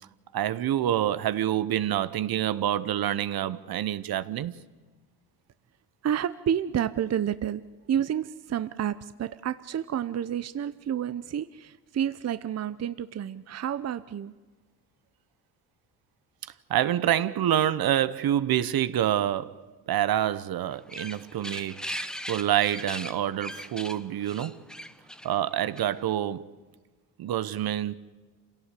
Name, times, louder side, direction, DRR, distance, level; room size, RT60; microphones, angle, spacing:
voice 1, 0.3-4.5 16.7-24.7 25.2-26.5 27.2-27.9, right 11 dB, 55° right, 1.0 m, -27 dB
voice 2, 6.0-7.6 7.9-14.4, right 9 dB, 35° right, 0.8 m, -30 dB
sound 1, 20.7-26.1, equal, ahead, 0.9 m, -40 dB
26.5 x 17.0 x 8.3 m
supercardioid pair, 75°, 43 cm